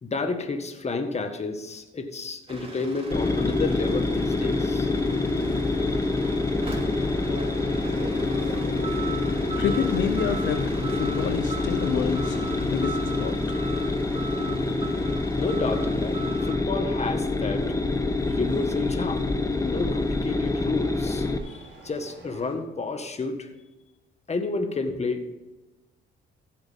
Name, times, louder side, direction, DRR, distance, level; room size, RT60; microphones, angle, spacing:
voice 1, 0.0-4.9 15.4-17.7 18.3-19.3 19.6-23.5 24.3-25.3, left 3 dB, 35° left, 6 dB, 1.7 m, -30 dB
sound 1, 2.5-16.5, right 3 dB, 30° right, 2.7 m, -39 dB
sound 2, 3.1-21.4, left 3 dB, 15° left, 1.0 m, -26 dB
sound 3, 4.8-22.5, right 3 dB, 70° right, 3.9 m, -45 dB
voice 2, 9.6-13.4, left 8 dB, 70° left, 7 dB, 0.9 m, -29 dB
15.0 x 8.0 x 3.7 m, 1.1 s
cardioid pair, 90°, 20 cm